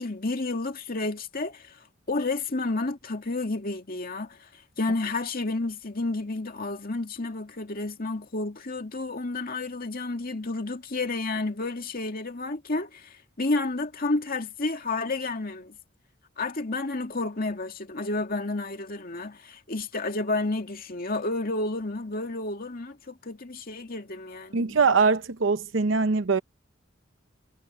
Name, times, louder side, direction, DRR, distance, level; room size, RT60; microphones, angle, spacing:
voice 1, 0.0-15.8 16.4-24.8, left 2 dB, 50° left, 2.2 m, -31 dB
voice 2, 24.5-26.4, right 4 dB, 70° right, 0.8 m, -22 dB
head